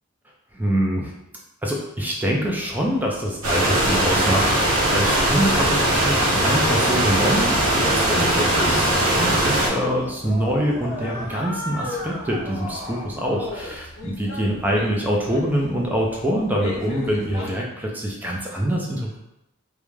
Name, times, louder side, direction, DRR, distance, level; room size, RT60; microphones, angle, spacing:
voice 1, 0.5-1.1 1.6-19.2, equal, 10° right, -2 dB, 0.4 m, -25 dB
sound 1, 2.4-17.5, left 1 dB, 65° left, 0.6 m, -37 dB
sound 2, 3.4-9.7, right 1 dB, 80° right, 0.8 m, -20 dB
2.4 x 2.2 x 3.1 m, 0.87 s
head